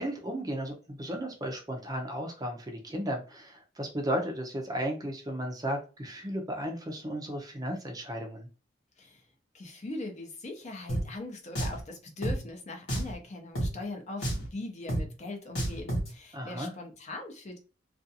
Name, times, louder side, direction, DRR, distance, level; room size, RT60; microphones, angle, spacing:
voice 1, 0.0-8.5 16.3-16.7, equal, 20° right, 3 dB, 0.5 m, -34 dB
voice 2, 9.5-17.6, left 2 dB, 40° left, 3 dB, 0.6 m, -41 dB
Drum, 10.9-11.0 11.5-11.8 12.2-12.4 12.9-13.1 13.5-13.7 14.2-14.5 14.9-15.0 15.5-16.1, right 1 dB, 80° left, 1.1 m, -30 dB
2.5 x 2.3 x 2.7 m, 0.34 s
head